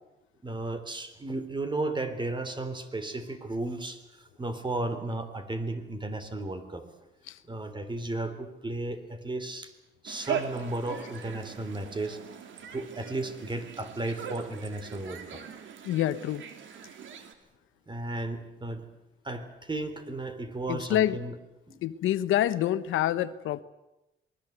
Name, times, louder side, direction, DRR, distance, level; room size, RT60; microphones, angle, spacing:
voice 1, 0.4-6.8 7.5-9.7 10.0-12.2 12.7-15.4 17.9-18.8 19.2-21.4 21.7-21.8, right 2 dB, 25° right, 10 dB, 3.6 m, -34 dB
sound 1, 10.1-17.3, right 7 dB, 75° right, 3.1 m, -40 dB
voice 2, 15.8-16.4 20.7-21.2 21.8-23.6, left 12 dB, 85° left, 13 dB, 1.1 m, -27 dB
27.5 x 20.0 x 8.1 m, 0.95 s
cardioid pair, 90°, 20 cm